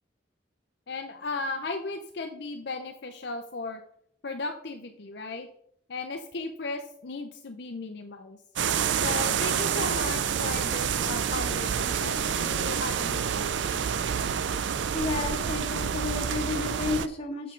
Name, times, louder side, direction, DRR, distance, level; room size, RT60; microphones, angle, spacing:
voice 1, 0.9-3.8 4.2-5.5 5.9-8.4 9.0-13.8, left 3 dB, 60° left, 5 dB, 0.6 m, -36 dB
sound 1, 8.6-17.1, right 7 dB, 75° right, 0.4 m, -28 dB
voice 2, 14.9-17.5, left 3 dB, 30° left, 2 dB, 1.4 m, -31 dB
7.5 x 6.7 x 3.8 m, 0.68 s
head